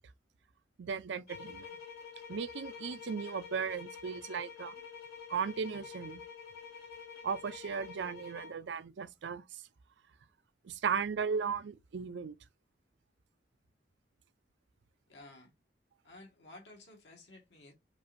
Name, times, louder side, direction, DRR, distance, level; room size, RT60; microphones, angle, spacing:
voice 1, 0.8-1.8 2.3-4.8 5.3-6.2 7.2-9.6 10.6-12.4, right 6 dB, 85° right, 0.4 m, -36 dB
sound 1, 1.3-8.6, left 6 dB, 60° left, 1.5 m, -48 dB
voice 2, 15.1-15.5 16.0-17.7, left 2 dB, 80° left, 1.6 m, -54 dB
5.1 x 2.6 x 2.6 m
head